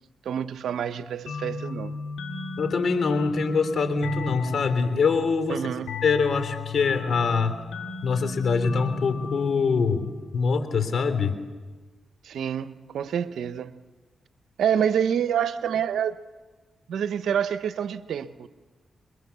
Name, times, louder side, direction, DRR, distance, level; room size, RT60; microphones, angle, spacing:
voice 1, 0.2-2.0 5.5-6.0 12.2-13.8 14.6-16.2 16.9-18.5, right 8 dB, 80° right, 1.0 m, -27 dB
sound 1, 1.3-10.6, left 4 dB, 85° left, 2.5 m, -36 dB
voice 2, 2.6-5.6 6.0-7.6 8.0-11.3, left 5 dB, 65° left, 3.2 m, -24 dB
29.0 x 22.5 x 7.0 m
cardioid pair, 55°, 0 cm